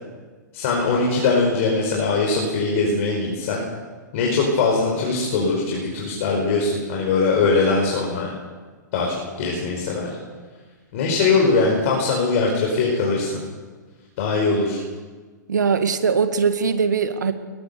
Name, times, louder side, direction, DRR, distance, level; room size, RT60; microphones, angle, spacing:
voice 1, 0.5-3.6 4.1-8.3 8.9-10.1 10.9-13.4 14.2-14.8, left 3 dB, 45° left, -1 dB, 5.2 m, -21 dB
voice 2, 15.5-17.3, right 5 dB, 70° right, 9 dB, 2.0 m, -20 dB
20.5 x 20.0 x 6.9 m, 1.4 s
figure-of-eight pair, 105°, 10 cm